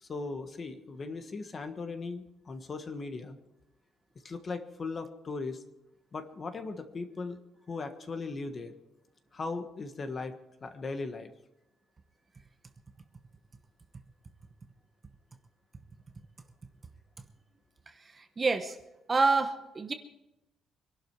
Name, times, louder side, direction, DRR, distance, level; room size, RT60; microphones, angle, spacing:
voice 1, 0.0-3.4 4.2-5.6 6.1-7.4 7.7-8.8 9.3-11.3, left 3 dB, 25° left, 8 dB, 1.4 m, -38 dB
voice 2, 18.1-18.8 19.1-19.9, right 3 dB, 20° right, 7 dB, 1.0 m, -27 dB
25.0 x 12.0 x 4.7 m, 0.93 s
cardioid pair, 180°, 0 cm